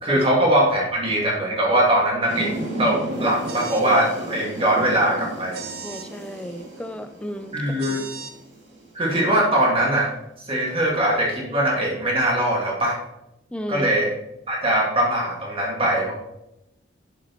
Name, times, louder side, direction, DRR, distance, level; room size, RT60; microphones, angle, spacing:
voice 1, 0.0-5.6 7.5-8.0 8.9-10.1 10.5-13.0 13.7-14.1 14.5-16.1, right 1 dB, 30° right, -3 dB, 1.9 m, -21 dB
sound 1, 2.3-9.2, right 2 dB, 70° right, 2.4 m, -34 dB
sound 2, 3.4-3.9 5.5-6.1 7.8-8.3, right 6 dB, 50° right, 0.9 m, -37 dB
voice 2, 5.8-7.8 13.5-13.9, equal, 5° left, 8 dB, 0.4 m, -33 dB
8.7 x 6.8 x 3.0 m, 0.88 s
head